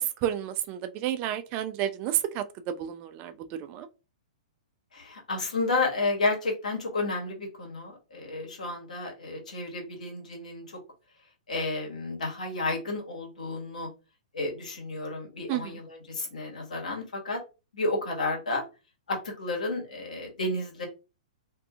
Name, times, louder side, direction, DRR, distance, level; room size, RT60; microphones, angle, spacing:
voice 1, 0.0-3.9 15.5-15.8, right 11 dB, 35° right, 0.4 m, -31 dB
voice 2, 4.9-10.8 11.5-13.9 14.3-17.4 17.7-18.6 19.1-20.9, left 2 dB, 85° left, 1.4 m, -31 dB
2.6 x 2.6 x 2.3 m
hypercardioid pair, 130°, 4 cm